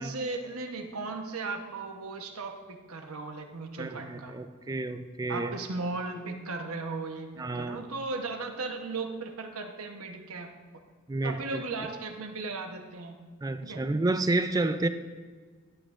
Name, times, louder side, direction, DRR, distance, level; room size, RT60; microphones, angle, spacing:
voice 1, 0.0-4.4 5.3-7.3 7.5-10.5 11.2-13.2 13.6-13.8, right 3 dB, 75° right, 4 dB, 1.0 m, -36 dB
voice 2, 3.8-5.5 7.4-7.8 11.1-11.6 13.4-14.9, right 2 dB, 15° right, 10 dB, 0.3 m, -30 dB
12.0 x 8.5 x 2.5 m, 1.5 s
head